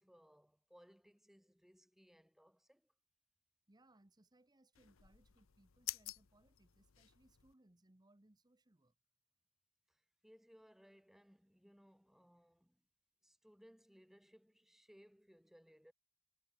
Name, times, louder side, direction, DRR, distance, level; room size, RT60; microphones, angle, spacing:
voice 1, 0.0-2.9 9.9-12.8 13.2-15.9, equal, ahead, 1.6 m, -65 dB
voice 2, 3.7-8.9, right 1 dB, 20° right, 1.0 m, -70 dB
sound 1, 4.7-7.5, left 16 dB, 70° left, 0.8 m, -50 dB
head